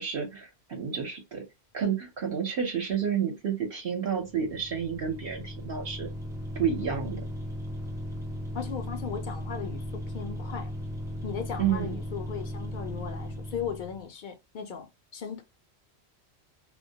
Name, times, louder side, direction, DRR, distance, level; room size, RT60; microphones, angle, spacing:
voice 1, 0.0-1.4 1.7-6.1 6.6-7.2 11.6-11.9, right 7 dB, 65° right, 0.9 m, -30 dB
sound 1, 4.2-14.1, left 1 dB, 5° right, 0.5 m, -37 dB
voice 2, 8.5-10.7 11.2-14.9 15.1-15.4, left 7 dB, 55° left, 0.6 m, -37 dB
2.2 x 2.1 x 2.7 m
omnidirectional pair, 1.1 m